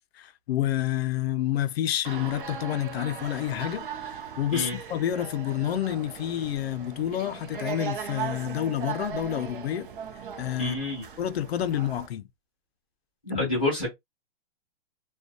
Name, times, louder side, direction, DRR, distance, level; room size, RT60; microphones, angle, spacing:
voice 1, 0.1-3.9 4.4-9.9 10.4-10.8 11.2-12.3 13.4-13.5, left 11 dB, 75° left, 0.5 m, -29 dB
sound 1, 2.0-12.1, right 7 dB, 55° right, 0.5 m, -38 dB
voice 2, 10.6-11.0 13.2-13.9, left 2 dB, 10° left, 0.3 m, -28 dB
2.2 x 2.2 x 2.6 m
hypercardioid pair, 180°, 31 cm